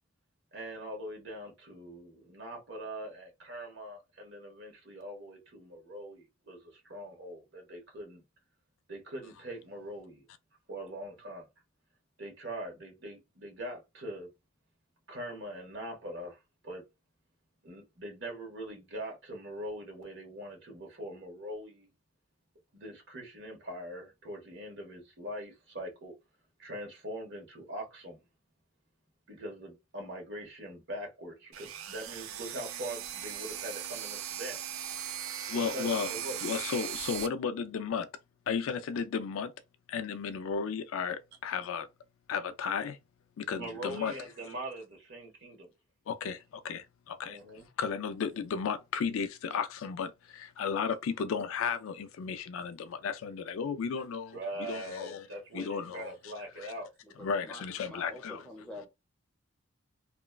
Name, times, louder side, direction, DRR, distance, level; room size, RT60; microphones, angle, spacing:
voice 1, 0.5-8.2 8.9-10.3 10.7-11.5 12.2-14.3 15.1-16.9 17.6-21.9 22.7-26.1 26.6-28.2 29.3-34.6 35.5-36.4 43.4-45.7 47.2-47.7 50.8-50.9 54.3-56.9, right 1 dB, 55° right, 1.2 m, -42 dB
sound 1, 31.5-37.3, right 10 dB, 75° right, 0.4 m, -39 dB
voice 2, 35.5-36.1 36.4-38.1 38.5-39.5 39.9-41.9 42.3-43.0 43.4-44.2 46.1-47.4 47.8-55.3 55.5-56.3 57.2-58.4, left 6 dB, 75° left, 0.3 m, -34 dB
voice 3, 57.0-58.9, left 1 dB, 5° left, 0.8 m, -47 dB
2.9 x 2.2 x 2.3 m
head